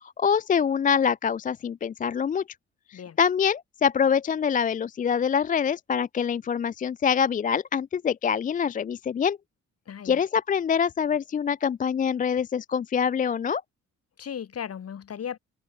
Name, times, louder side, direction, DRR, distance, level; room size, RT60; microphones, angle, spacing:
voice 1, 0.2-2.4 2.9-9.4 10.0-13.6, left 7 dB, 30° left, 0.4 m, -25 dB
voice 2, 9.9-10.2 14.2-15.4, left 8 dB, 55° left, 3.6 m, -36 dB
cardioid pair, 90°, 30 cm